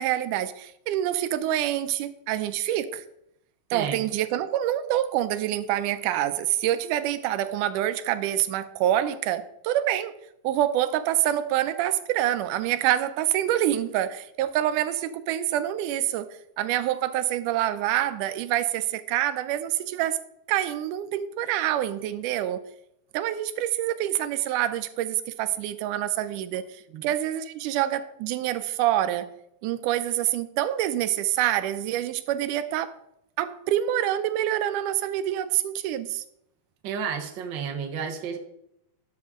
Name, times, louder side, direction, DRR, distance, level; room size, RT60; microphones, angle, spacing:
voice 1, 0.0-3.0 3.7-10.1 10.4-16.3 16.6-20.2 20.5-22.6 23.1-29.3 29.6-32.9 33.4-36.2, right 12 dB, 90° right, 12 dB, 2.1 m, -26 dB
voice 2, 3.7-4.0 26.9-27.0 36.8-38.4, right 6 dB, 65° right, 5 dB, 1.1 m, -31 dB
12.0 x 6.6 x 3.6 m, 0.79 s
omnidirectional pair, 3.6 m